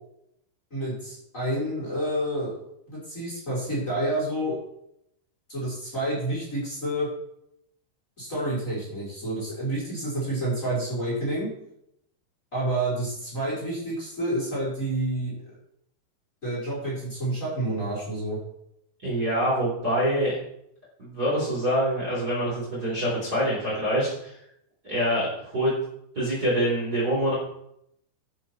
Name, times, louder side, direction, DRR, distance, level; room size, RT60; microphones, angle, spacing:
voice 1, 0.7-2.5 2.9-4.6 5.5-7.1 8.2-11.5 12.5-15.3 16.4-18.4, right 1 dB, 15° left, -7 dB, 5.0 m, -29 dB
voice 2, 19.0-20.3 21.0-24.4 24.8-25.7 26.1-27.3, equal, 20° right, -7 dB, 4.4 m, -25 dB
11.5 x 9.2 x 4.6 m, 0.77 s
omnidirectional pair, 5.6 m